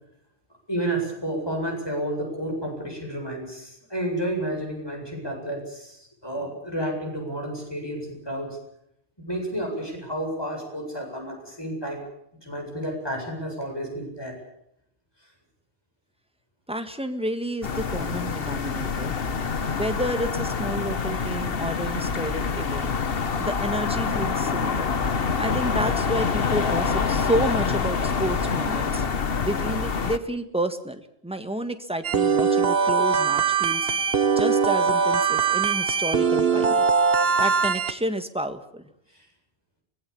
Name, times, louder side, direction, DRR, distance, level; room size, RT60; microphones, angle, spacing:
voice 1, 0.7-8.6 9.2-12.0 12.4-14.4 39.1-39.3, right 1 dB, 20° left, 1 dB, 7.9 m, -31 dB
voice 2, 16.7-19.1 19.7-22.9 23.4-24.9 25.4-29.0 29.4-33.9 34.3-36.9 37.4-38.8, right 1 dB, 5° right, 8 dB, 1.7 m, -30 dB
sound 1, 17.6-30.2, left 5 dB, 60° left, 1.4 m, -26 dB
sound 2, 32.0-37.9, right 5 dB, 60° right, 1.4 m, -21 dB
24.5 x 19.5 x 7.1 m, 0.76 s
omnidirectional pair, 1.1 m